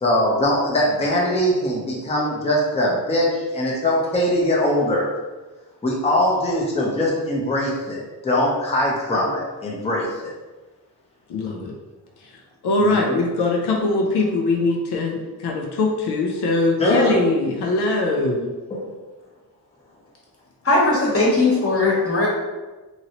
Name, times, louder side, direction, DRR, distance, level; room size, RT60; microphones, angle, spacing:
voice 1, 0.0-5.1 5.8-10.3 12.8-13.2 16.8-17.2 18.7-18.8, left 1 dB, 15° left, -4 dB, 0.6 m, -21 dB
voice 2, 11.3-11.7 12.2-18.5, left 2 dB, 85° left, 0 dB, 0.6 m, -22 dB
voice 3, 20.6-22.3, left 2 dB, 35° left, -4 dB, 1.1 m, -18 dB
3.0 x 2.7 x 2.8 m, 1.2 s
cardioid pair, 85°, 39 cm